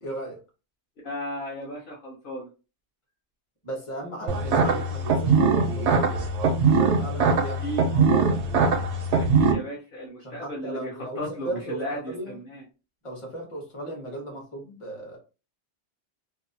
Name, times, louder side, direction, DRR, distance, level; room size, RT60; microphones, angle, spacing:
voice 1, 0.0-0.4 3.6-6.3 6.7-8.4 10.2-12.4 13.0-15.2, right 1 dB, 30° left, 0 dB, 0.9 m, -36 dB
voice 2, 1.0-2.5 7.4-7.9 9.1-12.6, right 1 dB, 55° left, -4 dB, 0.8 m, -35 dB
sound 1, 4.3-9.5, right 4 dB, 90° right, 0.9 m, -22 dB
2.7 x 2.0 x 2.6 m, 0.32 s
omnidirectional pair, 1.1 m